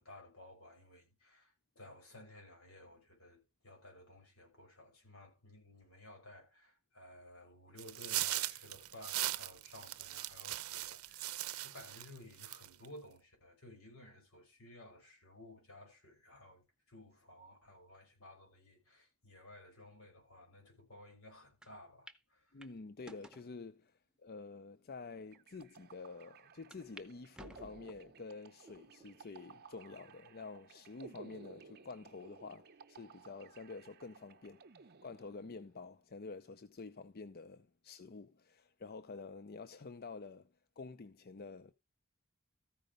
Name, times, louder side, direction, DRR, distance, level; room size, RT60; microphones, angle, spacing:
voice 1, 0.0-22.5, left 1 dB, 90° left, 6.0 m, -56 dB
sound 1, 7.8-12.1 12.4-12.9, right 15 dB, 85° right, 0.6 m, -39 dB
sound 2, 21.6-21.7 22.1-22.2 22.6-23.5 24.2-24.3 25.0-25.1 25.3-25.4 26.7-27.1 27.3-28.1 28.7-29.1 29.7-29.8 30.9-31.3, right 1 dB, 5° right, 0.7 m, -56 dB
voice 2, 22.5-34.6 35.0-40.5 40.8-41.7, left 4 dB, 45° left, 0.6 m, -49 dB
sound 3, 25.3-35.8, right 4 dB, 50° right, 0.7 m, -57 dB
14.0 x 5.2 x 5.2 m
head